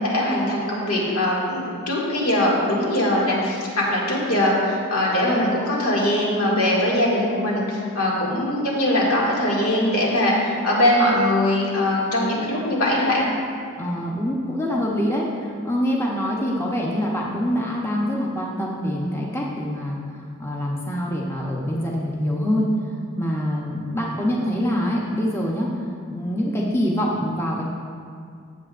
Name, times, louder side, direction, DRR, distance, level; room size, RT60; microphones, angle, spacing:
voice 1, 0.0-13.3, left 1 dB, 85° left, -4 dB, 2.2 m, -21 dB
voice 2, 13.8-22.7 23.2-27.7, equal, 10° left, -3 dB, 0.8 m, -25 dB
14.5 x 7.8 x 2.5 m, 2.2 s
head